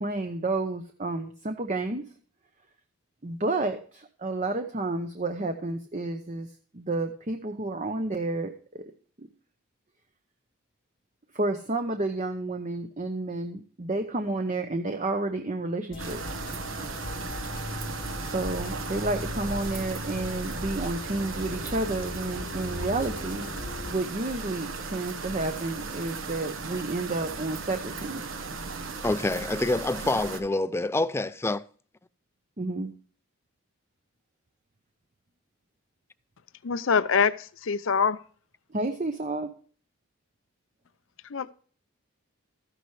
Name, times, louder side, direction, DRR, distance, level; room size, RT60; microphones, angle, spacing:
voice 1, 0.0-2.0 3.2-6.5 6.7-8.8 9.2-9.3 11.3-16.2 18.2-23.5 23.9-28.2 32.6-32.9 38.7-39.5, right 2 dB, 35° right, 0.8 m, -30 dB
sound 1, 15.9-23.9, left 2 dB, 40° left, 0.9 m, -38 dB
sound 2, 16.0-30.4, right 4 dB, 65° right, 1.2 m, -36 dB
voice 2, 29.0-31.6, left 2 dB, 10° left, 0.4 m, -27 dB
voice 3, 36.6-38.2 41.3-41.5, left 6 dB, 65° left, 0.5 m, -24 dB
13.5 x 10.0 x 3.3 m
head